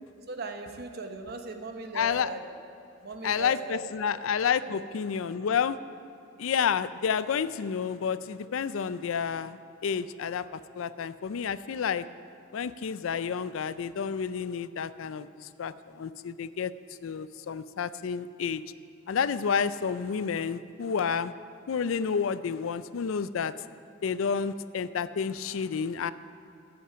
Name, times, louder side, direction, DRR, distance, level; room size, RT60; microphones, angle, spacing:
voice 1, 0.3-2.4 3.0-4.2 4.6-4.8, right 3 dB, 50° right, 5 dB, 1.0 m, -39 dB
voice 2, 1.9-2.3 3.2-5.8 6.4-12.0 12.5-16.7 17.0-18.6 19.1-21.3 21.7-23.5 24.0-26.1, left 6 dB, 75° left, 15 dB, 0.4 m, -30 dB
13.5 x 8.7 x 5.7 m, 2.8 s
head